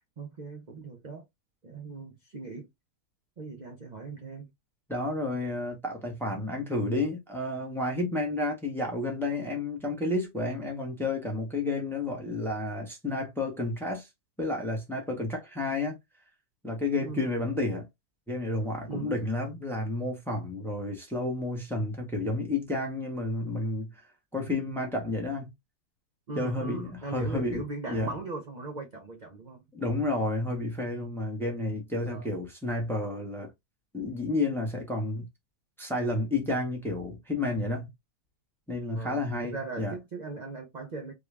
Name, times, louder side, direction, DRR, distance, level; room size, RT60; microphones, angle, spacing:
voice 1, 0.2-1.2 1.6-2.7 3.4-4.5 17.0-17.3 18.9-19.1 26.3-29.6 32.1-32.3 38.9-41.1, right 3 dB, 45° right, 0.5 m, -39 dB
voice 2, 4.9-14.1 14.4-16.0 16.6-17.9 18.3-23.9 24.3-25.5 26.4-27.6 27.9-28.1 29.7-33.5 33.9-35.3 35.8-37.9 38.7-40.0, left 2 dB, ahead, 0.7 m, -31 dB
3.7 x 2.3 x 3.2 m
omnidirectional pair, 1.7 m